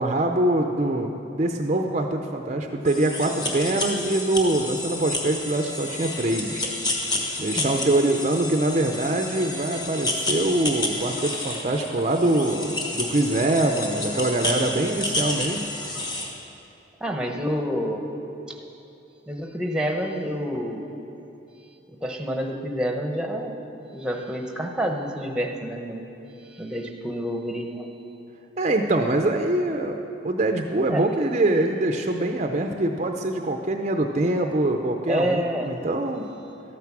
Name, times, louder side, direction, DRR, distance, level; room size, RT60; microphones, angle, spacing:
voice 1, 0.0-6.7 7.4-15.6 28.6-30.0 30.2-36.2, right 1 dB, 35° right, 4 dB, 0.5 m, -24 dB
sound 1, 2.8-16.3, left 2 dB, 20° left, 1.2 m, -30 dB
voice 2, 7.5-7.9 17.0-18.0 18.5-18.6 19.3-20.8 22.0-23.5 23.9-26.1 26.4-27.9 30.9-31.1 35.1-35.7, equal, 5° right, 3 dB, 0.9 m, -28 dB
13.0 x 9.3 x 6.0 m, 2.8 s
head